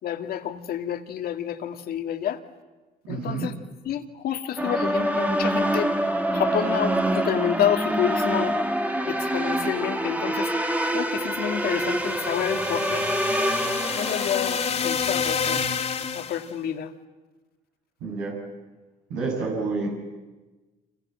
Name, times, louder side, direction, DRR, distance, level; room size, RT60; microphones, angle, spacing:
voice 1, 0.0-2.4 3.1-3.5 3.8-5.9 6.3-8.5 9.1-10.5 10.9-13.1 13.9-15.7 16.1-16.9, left 10 dB, 65° left, 7 dB, 2.0 m, -29 dB
voice 2, 3.1-3.5 18.0-18.3 19.1-19.9, right 4 dB, 85° right, -1 dB, 6.8 m, -28 dB
sound 1, 4.6-14.7, right 1 dB, 10° right, 1.9 m, -26 dB
sound 2, 11.5-16.5, left 6 dB, 40° left, 2.5 m, -29 dB
30.0 x 26.5 x 7.5 m, 1.2 s
cardioid pair, 110°, 17 cm